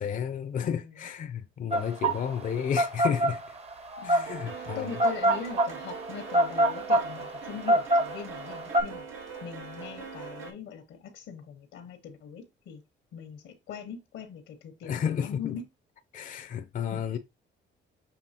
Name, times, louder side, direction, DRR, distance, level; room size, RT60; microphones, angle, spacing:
voice 1, 0.0-3.6 4.0-5.0 14.8-15.6 16.1-17.2, left 8 dB, 40° left, 0.5 m, -32 dB
voice 2, 0.6-0.9 4.0-9.0 9.4-12.8 13.1-15.6 16.9-17.2, left 7 dB, 90° left, 1.1 m, -41 dB
sound 1, 1.7-8.8, right 1 dB, 30° right, 0.7 m, -25 dB
sound 2, 2.9-3.3 3.6-10.5, right 5 dB, 85° right, 1.5 m, -42 dB
7.0 x 2.7 x 2.8 m
cardioid pair, 90°, 20 cm